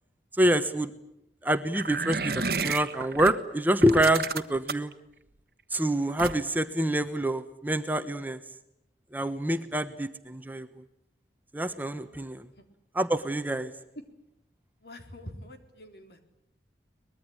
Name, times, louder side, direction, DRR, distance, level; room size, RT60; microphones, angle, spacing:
voice 1, 0.3-0.9 1.4-4.9 5.7-8.4 9.1-10.8 11.5-12.5 12.9-13.7, right 1 dB, 10° right, 8 dB, 1.0 m, -26 dB
sound 1, 1.7-3.3 3.8-4.9 6.2-6.6, right 4 dB, 55° right, 1.2 m, -31 dB
voice 2, 14.8-16.2, left 1 dB, 70° left, 5 dB, 3.7 m, -45 dB
23.5 x 20.5 x 9.8 m, 0.83 s
head